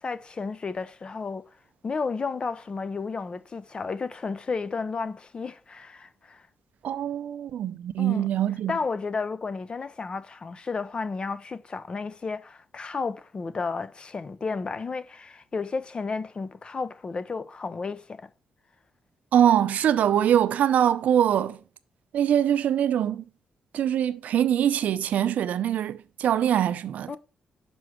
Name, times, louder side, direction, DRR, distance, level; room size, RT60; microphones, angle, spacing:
voice 1, 0.0-1.5 1.8-6.4 8.0-8.3 8.7-18.3 27.1-27.2, left 4 dB, 40° left, 0.6 m, -32 dB
voice 2, 6.8-8.8 19.3-21.6 22.1-23.2 23.7-27.2, right 10 dB, 75° right, 0.5 m, -23 dB
6.1 x 4.6 x 6.3 m
cardioid pair, 75°, 3 cm